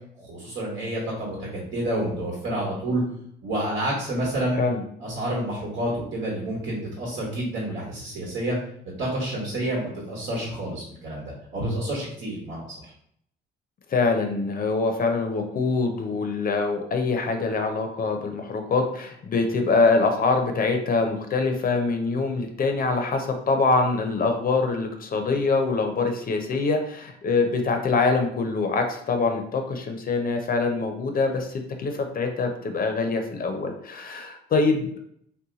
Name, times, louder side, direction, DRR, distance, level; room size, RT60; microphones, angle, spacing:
voice 1, 0.2-3.0 3.4-4.6 5.0-8.6 9.0-12.9, right 1 dB, 75° right, -3 dB, 1.3 m, -29 dB
voice 2, 13.9-35.0, left 3 dB, 45° left, 5 dB, 0.5 m, -24 dB
2.7 x 2.2 x 3.8 m, 0.69 s
cardioid pair, 90°, 20 cm